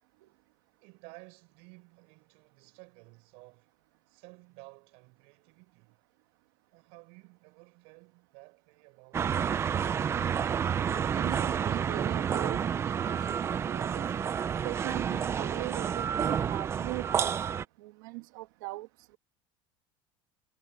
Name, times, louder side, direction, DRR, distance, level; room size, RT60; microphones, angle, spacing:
voice 1, 0.8-3.7 4.1-6.0 6.7-10.2, right 29 dB, 70° right, 7.0 m, -55 dB
sound 1, 9.1-17.6, right 8 dB, 25° right, 0.5 m, -30 dB
voice 2, 10.9-14.0 14.6-17.3 17.8-18.9, right 23 dB, 90° right, 1.6 m, -40 dB
cardioid pair, 145°, 11 cm